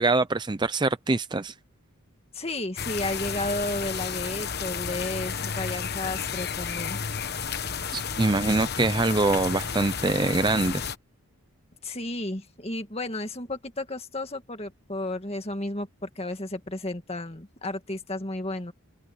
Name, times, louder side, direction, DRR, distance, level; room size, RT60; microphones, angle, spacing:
voice 1, 0.0-1.5 7.9-10.8, right 3 dB, 20° right, 0.4 m, -24 dB
voice 2, 2.3-7.0 11.8-18.7, left 2 dB, 25° left, 2.1 m, -33 dB
sound 1, 2.8-10.9, left 6 dB, 45° left, 1.2 m, -32 dB
open air
head